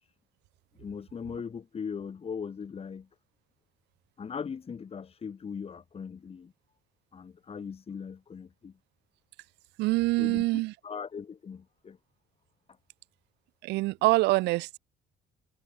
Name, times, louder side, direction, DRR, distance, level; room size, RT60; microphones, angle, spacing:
voice 1, 0.8-3.1 4.2-6.5 7.1-8.7 10.2-12.0, left 6 dB, 35° left, 4.5 m, -39 dB
voice 2, 9.8-10.7 13.6-14.8, right 20 dB, 85° right, 1.0 m, -25 dB
cardioid pair, 110°, 17 cm